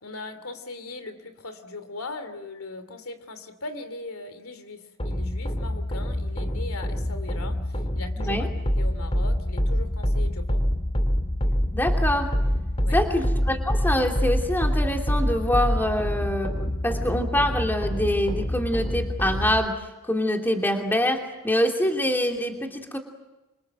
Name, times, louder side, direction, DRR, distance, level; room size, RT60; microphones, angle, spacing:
voice 1, 0.0-7.6 7.9-8.5 8.8-10.6 12.8-13.0, left 3 dB, 70° left, 9 dB, 2.8 m, -39 dB
sound 1, 5.0-19.6, equal, 25° left, 2.0 m, -26 dB
voice 2, 8.2-8.5 11.7-12.3 12.9-23.0, left 1 dB, 10° left, 3 dB, 2.9 m, -25 dB
28.5 x 26.0 x 7.9 m, 1.0 s
head